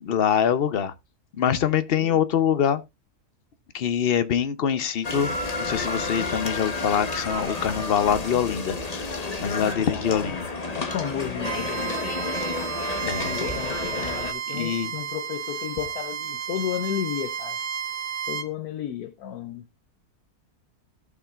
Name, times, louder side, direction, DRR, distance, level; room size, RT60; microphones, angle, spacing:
voice 1, 0.0-0.9 1.3-2.8 3.7-5.3 5.6-10.5 13.0-13.7 14.5-14.9, left 8 dB, 50° left, 0.8 m, -24 dB
sound 1, 5.0-14.3, left 3 dB, 25° left, 1.2 m, -31 dB
voice 2, 9.8-10.3 10.7-12.3 13.2-17.6 18.3-19.7, left 10 dB, 75° left, 1.2 m, -33 dB
Bowed string instrument, 11.4-18.5, right 8 dB, 50° right, 0.8 m, -32 dB
17.5 x 5.8 x 2.4 m
omnidirectional pair, 1.6 m